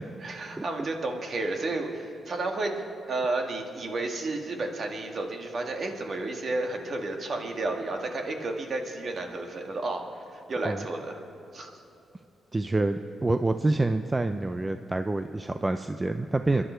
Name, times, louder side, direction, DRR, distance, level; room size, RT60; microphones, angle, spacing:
voice 1, 0.2-2.7 3.1-11.2 11.5-11.8 16.5-16.6, right 2 dB, 50° right, 3 dB, 1.9 m, -32 dB
voice 2, 12.5-16.6, right 2 dB, 20° right, 9 dB, 0.5 m, -27 dB
28.0 x 11.0 x 4.5 m, 2.7 s
cardioid pair, 100°, 0 cm